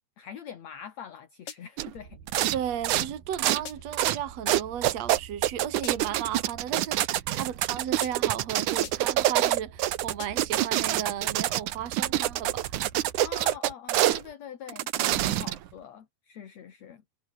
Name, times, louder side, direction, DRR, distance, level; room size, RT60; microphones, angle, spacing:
voice 1, 0.2-2.5 13.2-17.0, left 8 dB, 55° left, 3.0 m, -44 dB
sound 1, 1.5-1.9 3.7-4.1 4.5-4.9 5.8-6.3 8.0-8.4 8.8-9.3 10.2-10.6, left 8 dB, 80° left, 4.5 m, -44 dB
sound 2, 1.8-1.9 2.3-2.6 2.8-3.6 3.9-4.2 4.5-14.2 14.7-15.7, right 14 dB, 70° right, 2.4 m, -26 dB
sound 3, 1.9-13.6, right 7 dB, 85° right, 4.9 m, -48 dB
voice 2, 2.5-12.8, right 10 dB, 55° right, 3.1 m, -35 dB
omnidirectional pair, 3.9 m